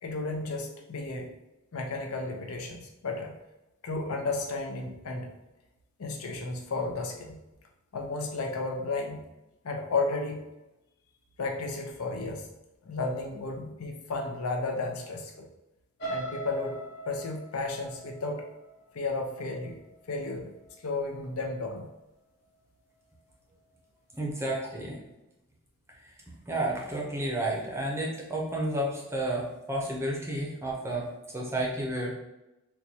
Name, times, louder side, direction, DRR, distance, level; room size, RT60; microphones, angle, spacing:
voice 1, 0.0-1.3 1.7-3.3 3.8-5.3 6.0-7.4 7.9-9.2 9.6-10.4 11.4-12.5 12.8-15.4 16.1-16.8 17.1-18.4 18.9-19.8 20.1-20.5 20.8-21.9, left 3 dB, 80° left, 2 dB, 0.6 m, -33 dB
sound 1, 16.0-20.0 20.4-20.7 21.1-21.2, right 2 dB, 55° left, 1.0 m, -40 dB
voice 2, 24.1-25.0 26.0-26.2 26.5-31.1 31.3-32.2, right 1 dB, 10° right, -2 dB, 0.5 m, -31 dB
4.4 x 2.2 x 2.7 m, 0.98 s
head